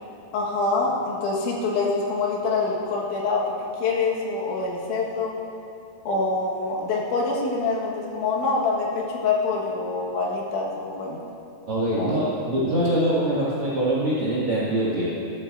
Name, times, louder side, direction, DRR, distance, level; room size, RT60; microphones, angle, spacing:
voice 1, 0.3-5.3 6.1-11.2 12.0-12.3, left 3 dB, 85° left, -3 dB, 3.9 m, -25 dB
voice 2, 11.7-15.1, right 1 dB, 55° right, -7 dB, 1.6 m, -23 dB
15.0 x 13.0 x 2.6 m, 3.0 s
omnidirectional pair, 5.2 m